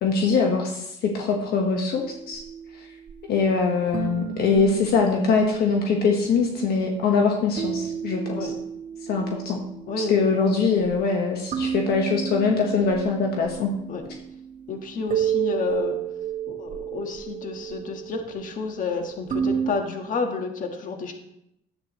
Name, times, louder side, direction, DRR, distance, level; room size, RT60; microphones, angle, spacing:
voice 1, 0.0-2.4 3.3-8.5 9.0-9.6 10.0-13.7 14.1-14.2, left 4 dB, 70° left, 1 dB, 1.4 m, -23 dB
sound 1, 2.0-19.7, right 9 dB, 45° right, 1.6 m, -32 dB
voice 2, 9.9-10.2 13.9-14.0 14.7-16.0 16.5-21.1, left 4 dB, 50° left, 4 dB, 1.6 m, -30 dB
11.0 x 8.5 x 3.1 m, 0.79 s
cardioid pair, 110°, 17 cm